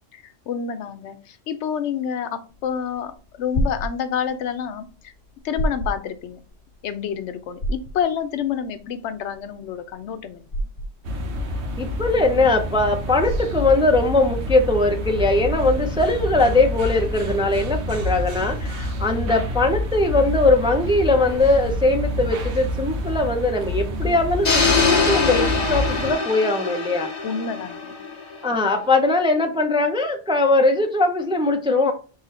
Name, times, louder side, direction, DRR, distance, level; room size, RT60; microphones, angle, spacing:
voice 1, 0.1-5.1 5.4-6.4 6.8-10.4 27.2-28.0, left 8 dB, 85° left, 11 dB, 0.9 m, -28 dB
sound 1, 2.5-16.1, equal, 65° left, 1.6 m, -31 dB
sound 2, 11.0-26.1, left 1 dB, 75° right, 1.1 m, -28 dB
voice 2, 11.8-27.1 28.4-31.9, left 2 dB, 5° right, 4 dB, 0.4 m, -20 dB
sound 3, 24.4-28.5, left 4 dB, 40° left, 1.0 m, -23 dB
4.0 x 3.1 x 4.2 m, 0.36 s
omnidirectional pair, 1.2 m